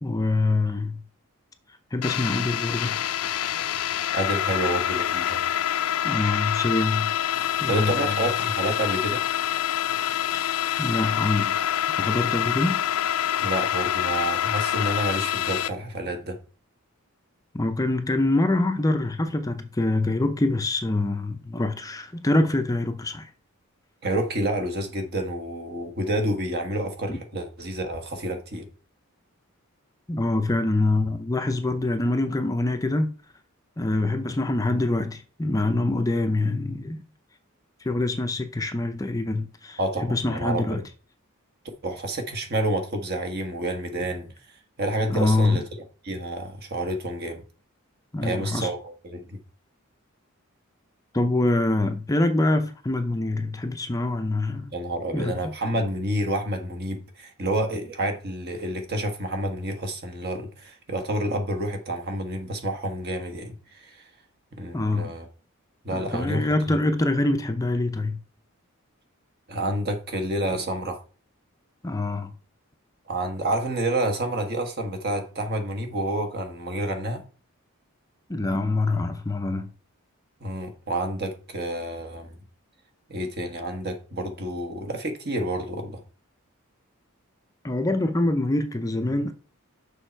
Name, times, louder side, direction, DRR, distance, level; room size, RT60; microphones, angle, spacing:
voice 1, 0.0-1.0 1.9-3.0 6.0-7.1 7.6-8.2 10.8-11.6 12.0-12.8 17.5-23.3 27.1-27.2 30.1-33.1 33.8-37.0 37.8-40.8 45.1-45.6 48.1-48.7 51.1-54.7 55.1-55.4 64.7-65.1 65.9-68.2 71.8-72.3 78.3-79.7 87.6-89.3, left 2 dB, 15° left, 0.5 m, -25 dB
sound 1, 2.0-15.7, left 10 dB, 80° left, 0.5 m, -26 dB
voice 2, 4.1-5.4 7.7-9.2 13.4-16.4 24.0-28.7 39.8-40.8 41.8-44.3 44.8-45.6 46.0-47.4 48.2-49.2 54.7-64.1 64.6-65.3 65.8-66.8 69.5-71.0 73.1-77.2 80.4-82.3 83.1-86.0, right 1 dB, 45° right, 1.4 m, -29 dB
6.6 x 5.3 x 4.4 m
head